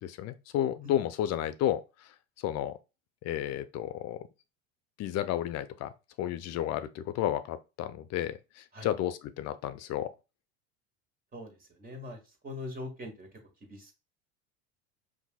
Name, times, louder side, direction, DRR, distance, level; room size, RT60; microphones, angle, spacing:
voice 1, 0.0-1.8 2.4-2.8 3.2-4.3 5.0-5.9 6.2-10.1, left 11 dB, 45° left, 0.5 m, -32 dB
voice 2, 11.3-12.2 12.4-13.3 13.7-13.9, left 2 dB, 25° right, 1.7 m, -42 dB
5.4 x 2.7 x 2.2 m
supercardioid pair, 95°, 36 cm